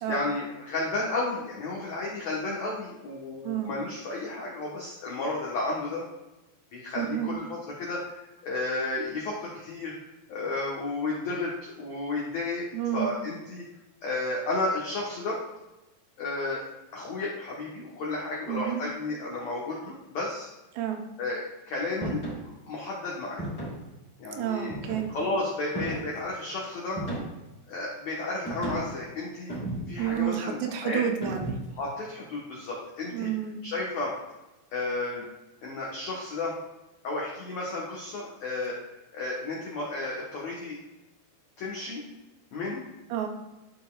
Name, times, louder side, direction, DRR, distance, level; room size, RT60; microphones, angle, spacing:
voice 1, 0.1-6.0 6.7-8.2 8.4-12.7 12.9-13.7 14.0-15.4 16.2-16.6 16.9-20.5 21.2-23.5 24.2-24.8 25.1-27.0 27.7-29.5 29.9-31.0 31.8-33.3 33.6-34.1 34.7-35.2 35.6-36.5 37.0-38.8 39.1-40.8 41.6-42.0 42.5-42.8, left 2 dB, 85° left, -4 dB, 1.5 m, -32 dB
voice 2, 3.4-3.7 7.0-7.3 12.7-13.1 18.5-18.8 20.7-21.0 24.2-25.1 30.0-31.6 33.1-33.6 43.1-43.3, right 10 dB, 80° right, 4 dB, 2.8 m, -30 dB
sound 1, 22.0-22.4 23.4-23.9 24.7-25.3 25.7-26.2 27.0-27.5 28.4-29.0 29.5-30.1 31.2-31.8, right 1 dB, 30° left, 2.8 m, -34 dB
12.0 x 5.4 x 2.4 m, 1.0 s
omnidirectional pair, 5.1 m